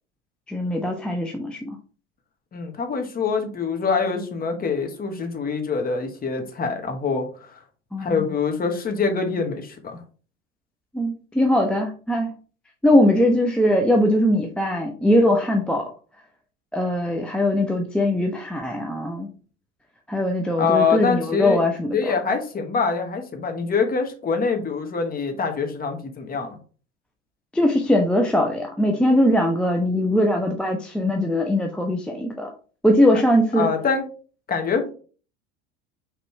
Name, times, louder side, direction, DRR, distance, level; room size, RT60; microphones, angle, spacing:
voice 1, 0.5-1.8 7.9-8.3 10.9-12.3 12.8-15.9 16.7-19.3 20.1-22.1 27.5-32.5 32.8-33.7, left 1 dB, 5° left, 2 dB, 0.5 m, -21 dB
voice 2, 2.5-7.6 8.0-10.0 20.6-21.6 21.9-26.6 33.6-34.0 34.5-34.9, left 5 dB, 25° left, 5 dB, 1.1 m, -24 dB
5.2 x 3.1 x 3.0 m, 0.39 s
hypercardioid pair, 75°, 35 cm